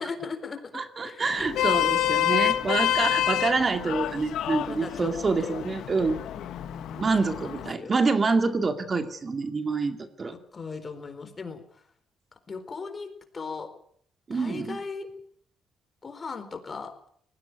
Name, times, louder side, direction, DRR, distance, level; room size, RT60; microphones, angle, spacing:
voice 1, 0.0-0.6 1.0-1.3 3.0-3.1 4.6-5.1 5.4-5.6 6.4-8.1 10.5-11.6 12.5-13.1 13.3-13.7 14.3-15.1 16.0-16.9, left 4 dB, 35° left, 8 dB, 4.2 m, -37 dB
voice 2, 0.7-6.2 6.9-10.4 14.3-14.8, right 4 dB, 35° right, 8 dB, 2.3 m, -27 dB
Vehicle horn car horn honking, 1.3-7.7, left 12 dB, 80° left, 1.5 m, -28 dB
19.5 x 16.0 x 9.5 m, 0.64 s
cardioid pair, 90°, 0 cm